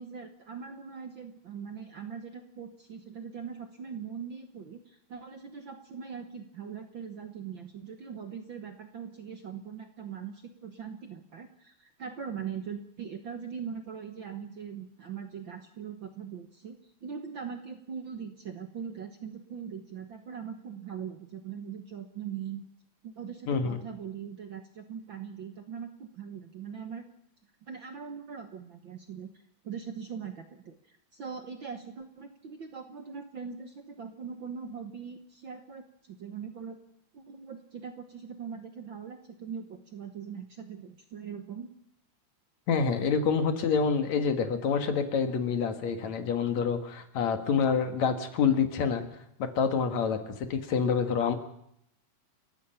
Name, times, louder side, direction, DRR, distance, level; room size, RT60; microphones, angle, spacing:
voice 1, 0.0-22.6 23.0-27.1 27.6-29.3 29.6-36.8 37.1-41.7, right 7 dB, 55° right, 6 dB, 1.5 m, -41 dB
voice 2, 23.5-23.8 42.7-49.0 49.4-51.3, left 6 dB, 65° left, 7 dB, 2.9 m, -27 dB
30.0 x 15.5 x 5.8 m, 0.74 s
omnidirectional pair, 3.5 m